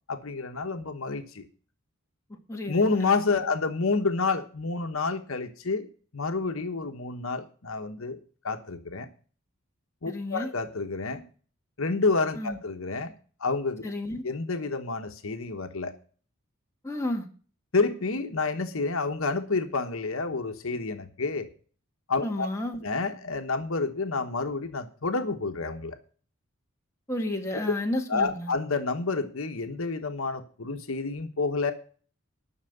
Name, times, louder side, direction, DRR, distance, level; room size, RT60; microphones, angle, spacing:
voice 1, 0.1-1.5 2.7-5.9 6.1-8.2 8.4-9.1 10.0-11.2 11.8-13.1 13.4-13.8 14.2-16.0 17.7-21.5 22.1-22.5 22.8-26.0 27.6-27.7 28.1-31.7, left 3 dB, 70° left, 7 dB, 1.2 m, -29 dB
voice 2, 2.5-3.4 10.1-10.5 12.4-12.6 13.8-14.2 16.8-17.3 22.2-22.8 27.1-28.5, left 1 dB, 15° left, 1 dB, 1.8 m, -32 dB
11.5 x 6.3 x 7.9 m, 0.41 s
head